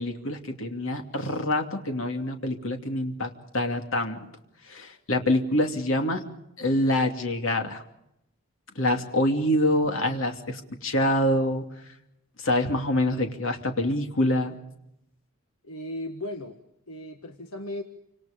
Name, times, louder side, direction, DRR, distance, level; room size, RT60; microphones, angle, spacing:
voice 1, 0.0-4.2 4.7-6.2 6.6-7.8 8.8-11.7 12.4-14.6, left 1 dB, 70° left, 4 dB, 2.7 m, -26 dB
voice 2, 15.6-16.6 16.9-17.8, left 1 dB, 85° left, 5 dB, 1.5 m, -36 dB
28.0 x 26.5 x 5.2 m, 0.82 s
head